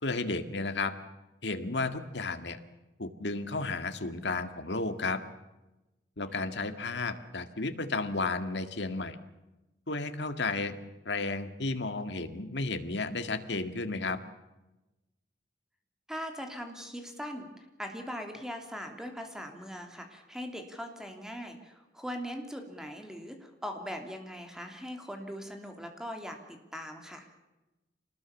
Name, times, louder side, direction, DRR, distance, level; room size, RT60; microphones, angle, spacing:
voice 1, 0.0-0.9 1.4-2.6 3.0-5.2 6.2-9.2 9.9-10.8 11.1-14.2, left 3 dB, 80° left, 9 dB, 1.9 m, -33 dB
voice 2, 16.1-27.3, equal, 5° right, 4 dB, 3.1 m, -40 dB
26.5 x 20.0 x 7.2 m, 1.0 s
head